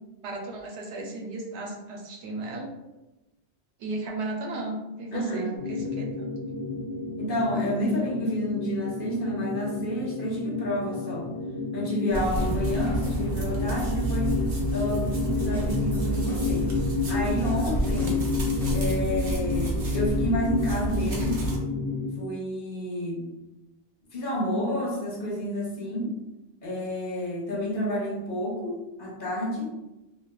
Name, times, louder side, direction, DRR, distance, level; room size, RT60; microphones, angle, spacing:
voice 1, 0.2-2.7 3.8-6.3, right 2 dB, 80° right, 0 dB, 0.9 m, -35 dB
voice 2, 5.1-5.6 7.2-11.3 11.7-14.4 14.7-16.6 17.1-18.2 18.7-21.5 22.2-23.3 24.1-26.1 26.6-29.7, equal, 55° left, -4 dB, 0.8 m, -30 dB
sound 1, 5.6-22.2, left 4 dB, 25° left, 0.8 m, -31 dB
sound 2, 12.1-19.2, left 1 dB, 5° left, 0.3 m, -47 dB
sound 3, 12.1-21.6, right 3 dB, 55° right, 0.7 m, -30 dB
3.0 x 2.3 x 2.2 m, 1.0 s
omnidirectional pair, 1.1 m